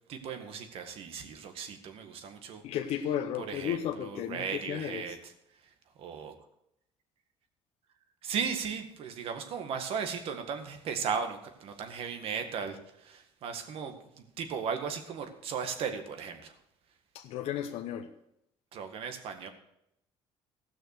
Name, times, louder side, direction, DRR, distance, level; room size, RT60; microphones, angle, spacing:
voice 1, 0.1-2.6 3.4-5.3 5.6-5.7 6.0-6.3 8.2-16.6 18.7-19.5, right 6 dB, 60° right, 6 dB, 1.8 m, -36 dB
voice 2, 2.6-5.2 17.1-18.1, left 10 dB, 75° left, 4 dB, 0.9 m, -34 dB
16.0 x 6.3 x 6.7 m, 0.79 s
cardioid pair, 125°, 11 cm